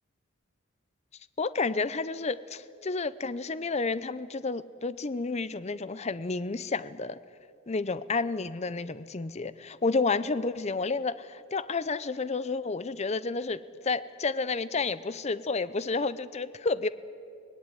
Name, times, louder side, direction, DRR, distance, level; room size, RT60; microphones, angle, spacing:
voice 1, 1.4-7.2 7.7-16.9, left 3 dB, 30° left, 15 dB, 0.6 m, -30 dB
25.5 x 18.5 x 9.8 m, 2.5 s
head